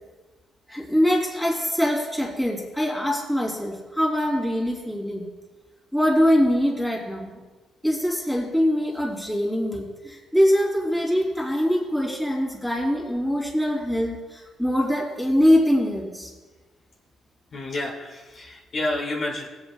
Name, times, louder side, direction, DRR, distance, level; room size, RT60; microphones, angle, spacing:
voice 1, 0.7-5.2 5.9-7.4 7.8-16.3, equal, ahead, -3 dB, 3.3 m, -23 dB
voice 2, 17.5-19.5, left 2 dB, 50° left, -2 dB, 2.3 m, -29 dB
22.0 x 8.1 x 2.4 m, 1.2 s
cardioid pair, 90°, 0 cm